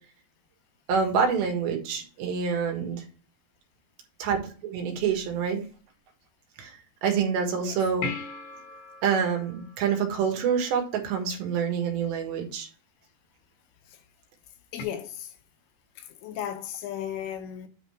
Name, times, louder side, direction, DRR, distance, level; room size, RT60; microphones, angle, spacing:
voice 1, 0.9-3.1 4.2-5.6 6.6-8.1 9.0-12.7, right 6 dB, 80° right, 3.8 m, -27 dB
sound 1, 8.0-10.7 14.8-14.9, left 4 dB, 70° left, 4.2 m, -39 dB
voice 2, 14.7-15.3 16.0-17.7, left 10 dB, 85° left, 3.2 m, -35 dB
9.4 x 3.8 x 5.0 m
omnidirectional pair, 5.1 m